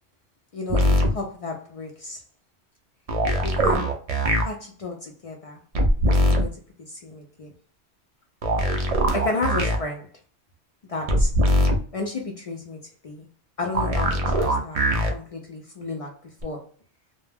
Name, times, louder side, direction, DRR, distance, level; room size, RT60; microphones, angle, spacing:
voice 1, 0.5-2.2 3.4-4.0 4.4-5.6 6.0-7.5 8.8-10.1 10.8-11.3 11.9-13.3 13.6-16.7, left 3 dB, 70° left, 0.3 m, -33 dB
sound 1, 0.7-1.1 3.1-4.4 5.7-6.4 8.4-9.8 11.1-11.8 13.7-15.1 16.4-16.5, equal, 55° right, 0.4 m, -21 dB
2.2 x 2.1 x 3.3 m
omnidirectional pair, 1.1 m